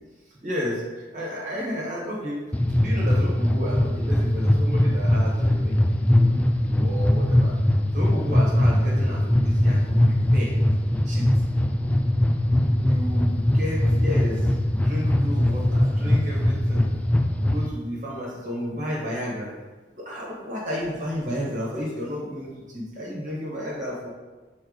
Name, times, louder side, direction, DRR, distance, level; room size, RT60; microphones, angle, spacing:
voice 1, 0.4-7.5 7.9-10.5 10.9-11.3 12.9-16.9 17.4-19.5 19.9-24.1, equal, 45° right, -5 dB, 1.4 m, -32 dB
sound 1, 2.5-17.7, left 1 dB, 5° left, 0.3 m, -21 dB
6.6 x 4.0 x 4.0 m, 1.2 s
head